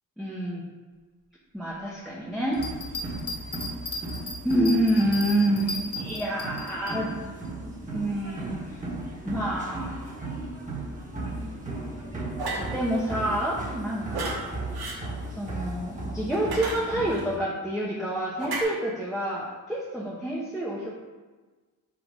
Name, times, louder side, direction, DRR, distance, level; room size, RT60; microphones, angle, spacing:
voice 1, 0.2-0.6 1.5-2.6 4.4-7.2 7.6-8.8 9.2-10.1 11.2-11.9 12.5-14.5 15.3-20.9, right 1 dB, ahead, -6 dB, 1.0 m, -28 dB
sound 1, 2.5-7.0, left 2 dB, 40° left, 1.1 m, -36 dB
sound 2, 2.5-17.4, right 2 dB, 20° right, 1.6 m, -36 dB
sound 3, 12.4-12.7 14.1-14.4 14.7-15.0 16.3-17.2 18.4-18.6, right 3 dB, 85° right, 1.6 m, -32 dB
5.2 x 5.0 x 5.1 m, 1.3 s
wide cardioid pair, 115°, 36 cm